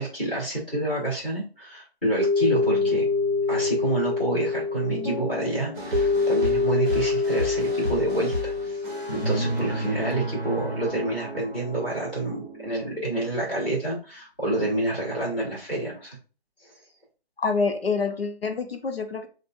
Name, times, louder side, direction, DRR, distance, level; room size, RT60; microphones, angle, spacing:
voice 1, 0.0-3.1 3.5-8.8 9.1-16.2, right 2 dB, 10° left, -13 dB, 1.2 m, -28 dB
sound 1, 2.2-9.5, left 4 dB, 50° right, 0.6 m, -25 dB
sound 2, 2.5-7.1 8.5-10.9, right 1 dB, 35° left, 0.4 m, -34 dB
sound 3, 5.7-13.9, equal, 15° right, 1.2 m, -36 dB
voice 2, 17.4-19.3, left 4 dB, 70° left, 5 dB, 0.9 m, -26 dB
6.9 x 2.5 x 2.4 m, 0.36 s
figure-of-eight pair, 175°, 31 cm